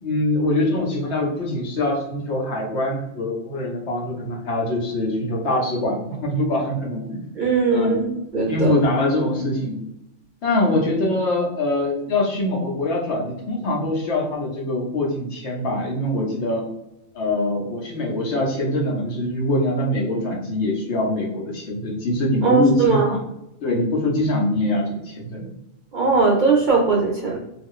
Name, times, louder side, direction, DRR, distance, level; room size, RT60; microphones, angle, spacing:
voice 1, 0.0-7.3 7.7-8.1 8.5-9.8 10.4-16.6 17.1-23.2 23.6-25.5, left 1 dB, 65° left, -1 dB, 1.0 m, -23 dB
voice 2, 7.4-8.7 22.4-23.1 25.9-27.4, right 4 dB, 55° right, -3 dB, 0.5 m, -19 dB
2.4 x 2.3 x 3.5 m, 0.86 s
omnidirectional pair, 1.3 m